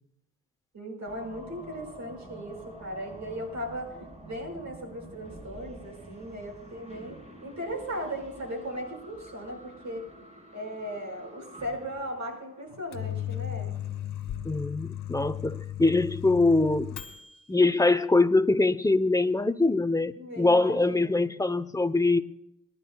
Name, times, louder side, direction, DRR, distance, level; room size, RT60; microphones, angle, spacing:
voice 1, 0.7-3.9 4.2-10.1 10.5-13.8 20.2-21.2, equal, 60° right, 1 dB, 5.6 m, -37 dB
sound 1, 1.1-13.1, right 1 dB, 20° right, 4.0 m, -48 dB
Microwave oven, 12.7-17.5, left 12 dB, 85° left, 1.7 m, -36 dB
voice 2, 14.4-17.0 17.5-22.2, left 2 dB, 10° left, 12 dB, 0.8 m, -23 dB
27.0 x 11.5 x 2.3 m, 0.84 s
cardioid pair, 70°, 32 cm